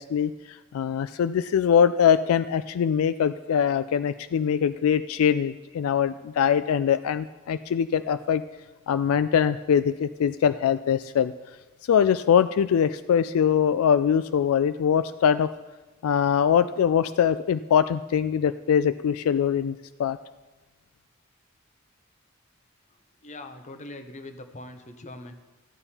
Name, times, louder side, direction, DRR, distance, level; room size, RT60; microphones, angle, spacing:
voice 1, 0.0-8.4 8.9-11.3 11.9-15.5 16.0-20.2, left 8 dB, 80° left, 13 dB, 0.3 m, -23 dB
voice 2, 23.2-25.3, left 2 dB, 35° left, 7 dB, 0.8 m, -41 dB
14.0 x 8.9 x 4.2 m, 1.2 s
head